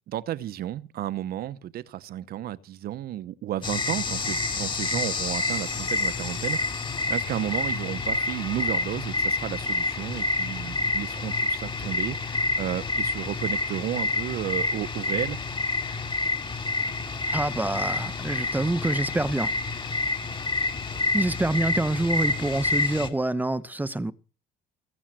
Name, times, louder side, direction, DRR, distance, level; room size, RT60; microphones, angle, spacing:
voice 1, 0.1-15.4, right 12 dB, 65° right, 0.9 m, -33 dB
sound 1, 3.6-23.1, left 3 dB, 30° left, 2.7 m, -28 dB
voice 2, 17.2-19.5 21.1-24.1, right 2 dB, 10° right, 0.9 m, -26 dB
21.5 x 7.2 x 7.6 m
cardioid pair, 110°, 17 cm